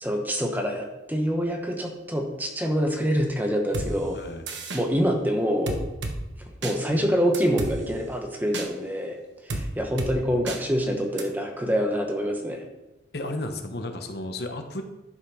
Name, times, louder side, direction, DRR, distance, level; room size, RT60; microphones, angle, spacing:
voice 1, 0.0-4.2 4.7-5.8 6.6-9.2 9.4-12.6, equal, 10° right, 1 dB, 1.1 m, -26 dB
sound 1, 3.7-3.9 4.5-4.8 5.7-6.2 6.6-6.8 7.3-7.7 8.5-8.7 9.5-9.6 10.0-10.1 10.5-10.6 11.2-11.3, right 2 dB, 80° right, 1.2 m, -30 dB
voice 2, 4.1-4.4 13.1-14.8, left 1 dB, 60° left, 6 dB, 0.9 m, -33 dB
11.5 x 5.7 x 4.9 m, 1.0 s
head